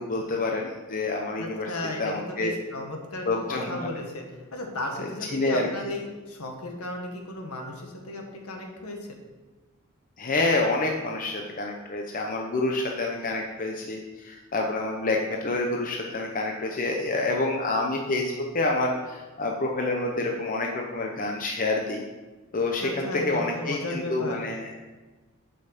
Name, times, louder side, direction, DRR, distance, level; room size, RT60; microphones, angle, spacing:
voice 1, 0.0-1.7 2.0-2.5 3.3-3.9 5.0-5.7 10.2-22.0 22.5-24.8, left 2 dB, 40° left, 1 dB, 0.8 m, -28 dB
voice 2, 1.4-9.0 22.8-24.4, left 1 dB, 75° left, 2 dB, 1.7 m, -35 dB
7.8 x 5.5 x 6.7 m, 1.3 s
head